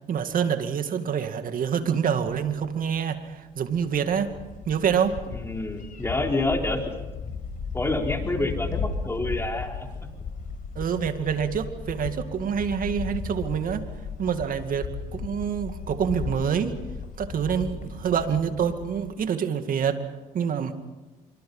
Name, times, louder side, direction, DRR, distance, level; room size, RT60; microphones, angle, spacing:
voice 1, 0.1-4.3 4.7-5.2 10.8-13.9 14.2-16.7 17.2-20.1 20.3-20.7, right 7 dB, 55° right, 8 dB, 2.2 m, -26 dB
sound 1, 1.5-1.6 2.3-2.4 2.6-2.7 3.0-19.1, left 5 dB, 50° left, 4.9 m, -36 dB
voice 2, 5.3-6.8 7.7-10.1 17.9-18.1, left 2 dB, 15° left, 2 dB, 4.3 m, -28 dB
25.5 x 24.5 x 5.6 m, 1.2 s
supercardioid pair, 80°, 17 cm